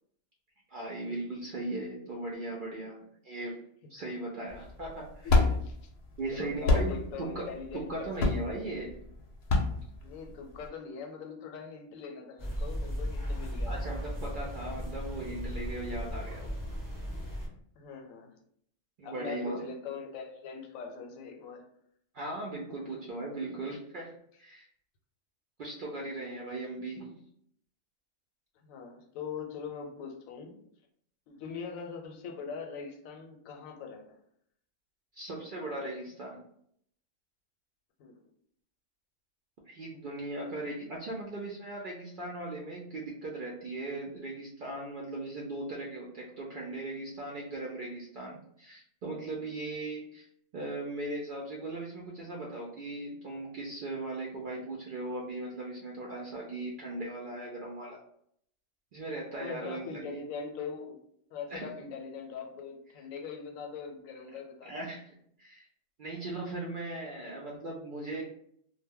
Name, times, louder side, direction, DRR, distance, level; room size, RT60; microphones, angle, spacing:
voice 1, 0.7-3.0 3.2-3.6 3.9-5.5 6.2-7.5 7.7-9.0 13.7-16.5 19.0-19.6 22.1-24.1 24.4-24.7 25.6-27.2 35.1-36.4 39.7-50.3 50.5-58.0 58.9-60.2 61.5-61.7 64.6-65.1 65.4-65.7 66.0-68.2, right 2 dB, 65° right, -3 dB, 0.5 m, -38 dB
sound 1, 4.5-10.7, left 3 dB, 65° left, 0.7 m, -28 dB
voice 2, 5.2-5.9 6.3-8.4 10.0-14.0 17.8-18.4 19.0-21.6 28.6-30.6 31.3-34.2 38.0-38.2 59.4-61.0 61.3-64.8, left 5 dB, 85° left, 3 dB, 1.0 m, -42 dB
sound 2, 12.4-17.5, equal, 25° left, 0.4 m, -36 dB
2.1 x 2.1 x 3.5 m, 0.69 s
omnidirectional pair, 1.3 m